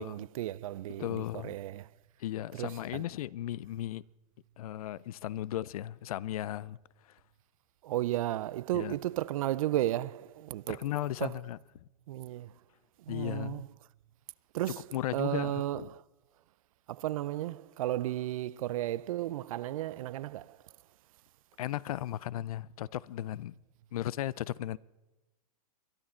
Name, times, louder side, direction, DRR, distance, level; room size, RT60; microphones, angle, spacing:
voice 1, 0.0-1.9 2.5-3.1 7.8-10.8 11.2-11.3 12.1-12.5 13.1-13.7 14.5-14.8 15.1-16.0 16.9-20.6, right 14 dB, 65° right, 0.5 m, -34 dB
voice 2, 1.0-1.6 2.2-4.0 4.6-6.8 8.7-9.0 10.7-11.6 13.1-13.7 14.9-15.9 21.6-23.5 23.9-24.8, left 13 dB, 75° left, 0.5 m, -36 dB
22.0 x 11.0 x 4.3 m
hypercardioid pair, 140°, 19 cm